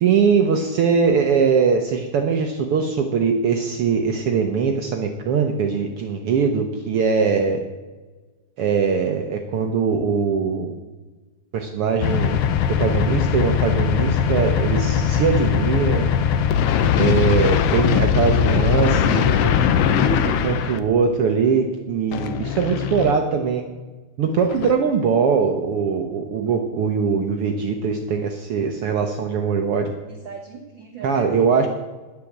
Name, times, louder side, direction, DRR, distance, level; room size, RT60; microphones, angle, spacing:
voice 1, 0.0-7.6 8.6-10.7 11.5-12.4 12.8-16.1 17.0-19.5 20.4-23.6 24.2-29.9 31.0-31.7, right 6 dB, 70° right, 4 dB, 1.4 m, -21 dB
sound 1, 12.0-20.8 22.1-23.1 24.4-24.7, left 8 dB, 75° left, 1.4 m, -20 dB
voice 2, 18.6-20.6 30.1-31.6, right 6 dB, 90° right, 4 dB, 1.0 m, -35 dB
10.5 x 8.2 x 7.3 m, 1.3 s
omnidirectional pair, 3.5 m